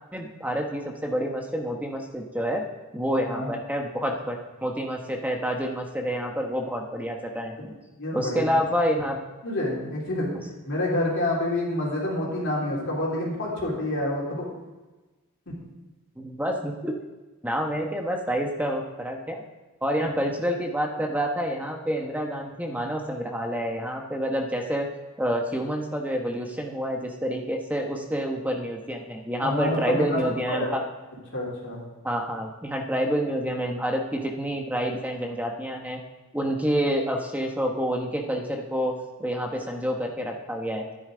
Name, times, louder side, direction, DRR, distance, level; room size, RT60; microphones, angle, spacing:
voice 1, 0.1-2.6 2.9-4.4 4.6-7.7 8.1-9.2 16.2-17.0 17.4-19.4 19.8-24.9 25.2-30.8 32.0-36.0 36.3-38.9 39.2-40.8, equal, 5° right, 1 dB, 1.0 m, -28 dB
voice 2, 8.0-8.4 9.4-10.3 10.6-14.5 15.5-15.6 20.0-20.1 29.4-30.2 30.5-30.7 31.3-31.8, left 1 dB, 55° left, -4 dB, 3.4 m, -28 dB
12.0 x 10.0 x 3.8 m, 1.2 s
head